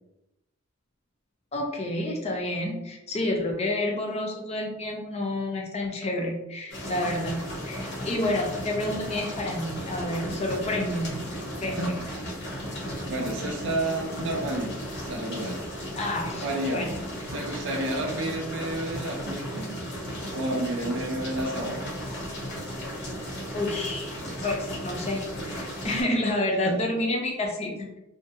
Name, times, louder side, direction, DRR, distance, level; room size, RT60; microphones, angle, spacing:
voice 1, 1.5-11.2 11.6-12.0 16.0-16.5 16.7-16.9 23.5-24.2 24.4-27.9, left 1 dB, 30° left, 1 dB, 0.5 m, -29 dB
sound 1, 6.7-26.0, equal, 55° left, 0.8 m, -35 dB
voice 2, 10.6-10.9 11.6-12.3 13.1-15.6 16.4-16.9 17.3-19.8 20.3-22.0 26.7-26.8, right 1 dB, 60° right, 1 dB, 0.4 m, -31 dB
2.5 x 2.2 x 2.6 m, 0.93 s
head